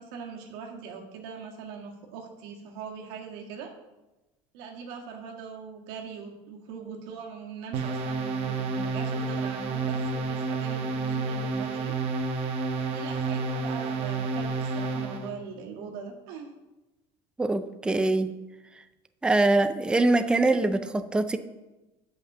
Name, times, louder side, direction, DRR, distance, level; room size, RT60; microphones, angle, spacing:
voice 1, 0.0-3.7 4.5-11.9 12.7-16.5, right 6 dB, 85° right, 0 dB, 1.8 m, -41 dB
sound 1, 7.7-15.3, right 4 dB, 50° right, 1.3 m, -30 dB
voice 2, 17.4-18.3 19.2-21.4, right 2 dB, 5° right, 10 dB, 0.4 m, -23 dB
8.1 x 5.8 x 6.7 m, 1.1 s
cardioid pair, 145°, 13 cm